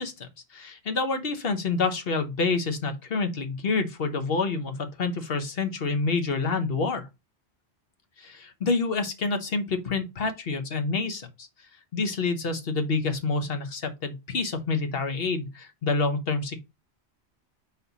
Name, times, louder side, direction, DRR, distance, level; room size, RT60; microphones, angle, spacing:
voice 1, 0.0-7.1 8.2-11.5 11.9-16.6, left 4 dB, 60° left, 1.3 m, -28 dB
5.5 x 4.3 x 4.1 m
omnidirectional pair, 1.1 m